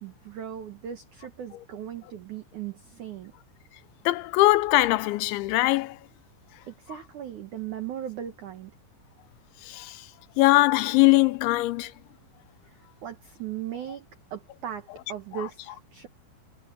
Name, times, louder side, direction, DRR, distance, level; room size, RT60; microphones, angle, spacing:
voice 1, 0.0-3.3 6.7-8.7 12.7-16.1, right 10 dB, 80° right, 1.7 m, -38 dB
voice 2, 4.1-6.0 9.6-10.0 10.4-11.9, left 19 dB, 85° left, 2.9 m, -21 dB
omnidirectional pair, 5.5 m